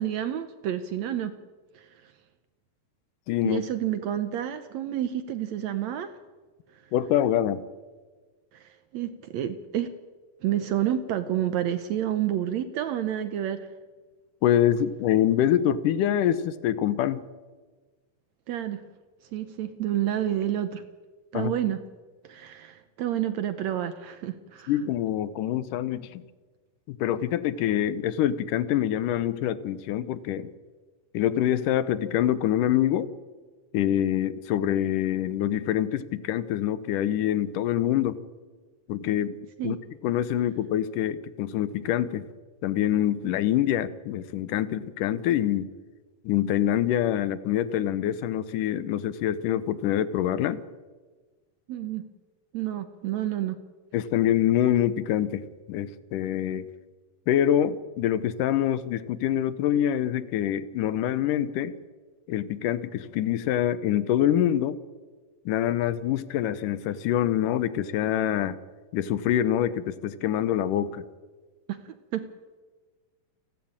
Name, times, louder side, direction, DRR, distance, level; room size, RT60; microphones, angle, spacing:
voice 1, 0.0-1.3 1.7-2.1 3.4-6.2 8.5-10.0 10.4-13.7 18.5-18.8 19.3-20.8 21.3-21.8 22.2-24.7 39.6-39.8 51.7-52.1 52.5-53.6 71.7-72.3, right 11 dB, 70° right, 11 dB, 1.8 m, -29 dB
voice 2, 3.3-3.6 6.9-7.6 14.4-17.2 21.3-21.5 24.7-26.2 26.9-30.5 31.1-33.1 33.7-38.2 38.9-39.4 39.6-39.8 40.0-42.3 42.6-45.7 46.3-50.6 53.9-56.7 57.3-61.7 62.3-64.8 65.5-68.6 68.9-71.1, left 11 dB, 75° left, 15 dB, 2.4 m, -25 dB
29.0 x 11.5 x 8.9 m, 1.4 s
omnidirectional pair, 3.9 m